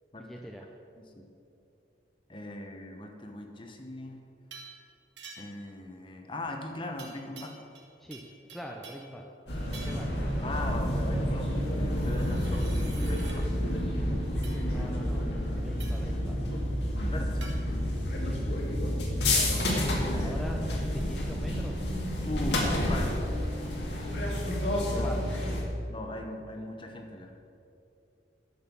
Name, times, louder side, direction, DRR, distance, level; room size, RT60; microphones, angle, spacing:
voice 1, 0.2-0.7 8.0-8.2 8.5-9.2 9.7-10.1 14.1-16.4 18.2-18.5 18.7-19.0 20.2-21.9 25.0-25.3, equal, ahead, 0 dB, 0.5 m, -44 dB
voice 2, 2.3-4.2 5.4-7.6 10.4-13.5 17.0-17.7 19.7-20.4 22.2-22.6 22.9-23.1 24.9-25.1 25.9-27.3, left 1 dB, 25° left, 3 dB, 1.0 m, -39 dB
sound 1, 4.5-4.8 5.2-5.7 7.0-7.9 8.1-9.1 9.7-10.1 11.8-13.4 14.4-14.6 15.8-16.1 17.4-17.6, right 5 dB, 75° right, 1.8 m, -48 dB
sound 2, 9.5-25.6, left 1 dB, 70° left, 1.9 m, -29 dB
11.0 x 6.5 x 6.9 m, 2.8 s
head